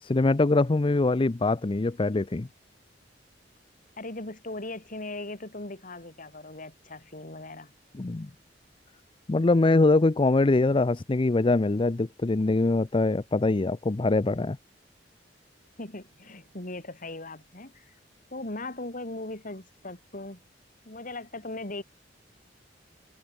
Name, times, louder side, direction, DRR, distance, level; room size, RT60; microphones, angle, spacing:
voice 1, 0.0-2.5 7.9-8.3 9.3-14.6, left 2 dB, 30° left, 0.5 m, -23 dB
voice 2, 4.0-7.7 15.8-17.9 18.3-20.4 20.9-21.8, left 2 dB, 50° left, 3.9 m, -39 dB
head